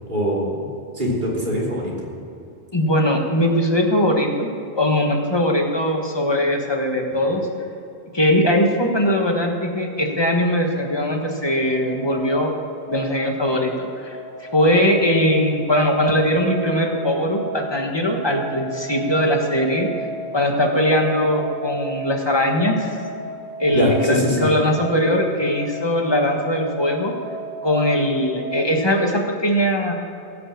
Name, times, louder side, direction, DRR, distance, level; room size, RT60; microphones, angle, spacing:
voice 1, 0.1-0.6 0.9-2.1 23.7-24.5, equal, 50° right, -5 dB, 3.4 m, -22 dB
voice 2, 2.7-4.5 4.8-7.4 8.1-12.5 12.9-19.9 20.3-22.9 23.6-27.1 27.6-29.9, left 1 dB, 25° left, 2 dB, 1.5 m, -20 dB
sound 1, 10.7-28.8, right 2 dB, 5° left, 3.3 m, -34 dB
15.5 x 6.8 x 7.4 m, 2.7 s
omnidirectional pair, 1.1 m